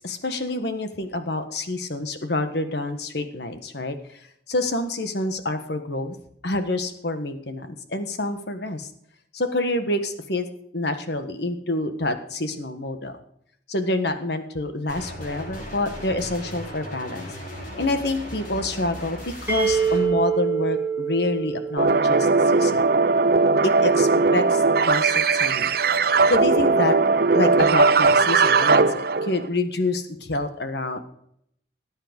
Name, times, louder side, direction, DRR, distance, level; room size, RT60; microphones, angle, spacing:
voice 1, 0.0-4.0 4.5-6.1 6.4-8.9 9.3-10.5 10.7-13.2 13.7-17.3 17.8-22.9 23.6-25.7 26.3-27.0 27.3-31.1, left 2 dB, 60° left, 8 dB, 1.4 m, -27 dB
sound 1, 14.9-20.1, equal, 45° left, 7.0 m, -37 dB
sound 2, 19.5-23.2, right 6 dB, 10° right, 2.5 m, -26 dB
sound 3, 21.8-29.5, right 4 dB, 50° right, 0.6 m, -19 dB
18.5 x 9.0 x 5.3 m, 0.71 s
head